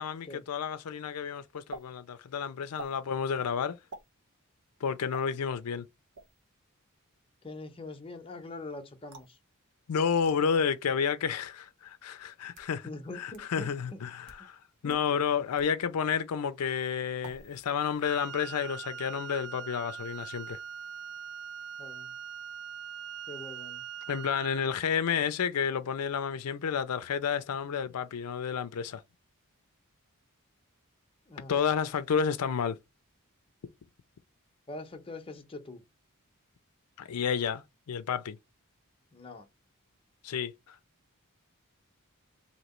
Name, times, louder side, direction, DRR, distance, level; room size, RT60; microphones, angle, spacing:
voice 1, 0.0-3.8 4.8-5.8 9.9-12.9 13.2-20.6 24.1-29.0 31.5-32.8 37.0-38.4 40.2-40.8, left 7 dB, 85° left, 0.5 m, -31 dB
sound 1, 1.7-1.8 2.7-3.0 3.9-4.1 5.1-5.3 6.1-6.4 9.1-9.4 10.2-10.4 11.3-11.4 12.3-12.7 13.3-13.4 14.1-14.4 14.9-15.0 15.6-15.7 17.2-17.6 17.9-18.3, right 3 dB, 80° right, 1.1 m, -47 dB
voice 2, 7.4-9.4 12.8-14.0 14.8-15.0 21.8-22.1 23.3-23.8 31.3-31.5 34.7-35.8 39.1-39.5, left 2 dB, 25° left, 0.8 m, -43 dB
Wind instrument woodwind instrument, 18.0-24.7, right 7 dB, 55° right, 0.3 m, -42 dB
3.0 x 2.8 x 4.2 m
head